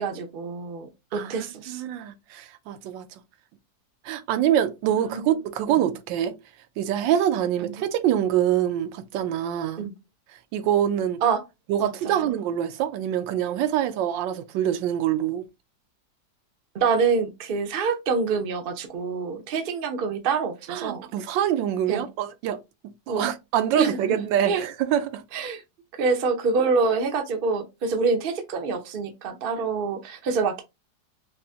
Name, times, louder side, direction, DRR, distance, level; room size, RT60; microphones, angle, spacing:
voice 1, 0.0-1.8 5.0-5.3 5.7-5.8 7.6-7.8 9.8-9.9 11.2-11.4 11.8-12.4 16.7-21.1 21.9-22.1 23.1-23.3 23.8-24.2 24.5-24.6 25.3-25.6 26.0-30.6, right 5 dB, 60° right, 0.5 m, -26 dB
voice 2, 1.1-3.1 4.0-6.3 6.8-9.8 10.5-11.2 11.7-15.4 20.7-22.6 23.1-25.2, right 10 dB, 85° right, 1.3 m, -25 dB
5.6 x 2.1 x 2.7 m
omnidirectional pair, 2.0 m